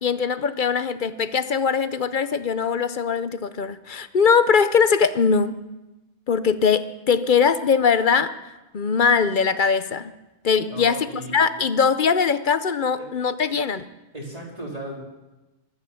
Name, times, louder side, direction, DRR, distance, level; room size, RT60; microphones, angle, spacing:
voice 1, 0.0-5.6 6.3-8.3 8.7-10.1 10.4-11.1 11.3-13.9, left 6 dB, 50° left, 13 dB, 0.8 m, -21 dB
voice 2, 10.7-11.3 13.0-13.1 14.1-15.0, right 1 dB, 35° right, -2 dB, 3.8 m, -35 dB
23.5 x 8.8 x 7.0 m, 1.0 s
omnidirectional pair, 1.2 m